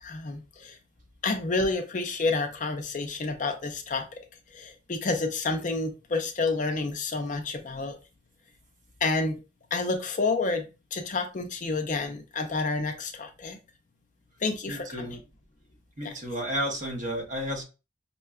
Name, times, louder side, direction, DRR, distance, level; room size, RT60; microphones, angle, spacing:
voice 1, 0.0-0.8 1.2-4.2 4.5-8.0 9.0-9.4 9.7-10.6 10.9-13.6 14.4-15.2 16.0-16.1, left 3 dB, 40° left, 0.5 m, -29 dB
voice 2, 14.7-15.2 16.0-17.6, equal, 40° right, 0.9 m, -32 dB
5.4 x 2.2 x 2.3 m
head